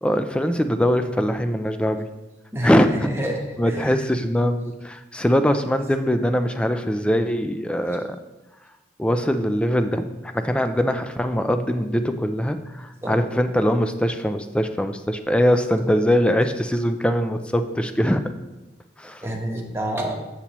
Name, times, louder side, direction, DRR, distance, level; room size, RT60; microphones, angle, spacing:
voice 1, 0.0-2.1 2.6-3.1 3.6-8.2 9.0-18.2 19.0-19.2, equal, 5° left, 8 dB, 0.3 m, -22 dB
voice 2, 2.5-4.0 7.9-8.0 13.0-13.3 19.0-20.1, right 1 dB, 15° right, 0 dB, 0.9 m, -29 dB
8.2 x 7.1 x 3.0 m, 1.0 s
head